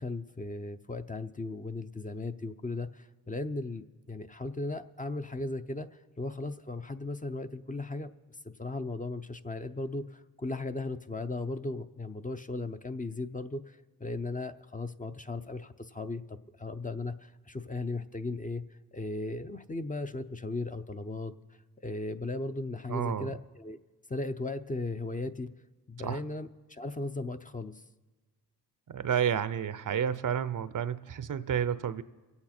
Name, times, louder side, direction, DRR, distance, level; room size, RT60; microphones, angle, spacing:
voice 1, 0.0-5.9 6.2-8.1 8.4-23.8 24.1-25.5 25.9-27.8, left 2 dB, 20° left, 8 dB, 0.7 m, -37 dB
voice 2, 22.9-23.3 26.0-26.2 28.9-32.0, right 8 dB, 55° right, 14 dB, 0.7 m, -30 dB
23.5 x 8.6 x 4.4 m, 1.2 s
cardioid pair, 60°, 38 cm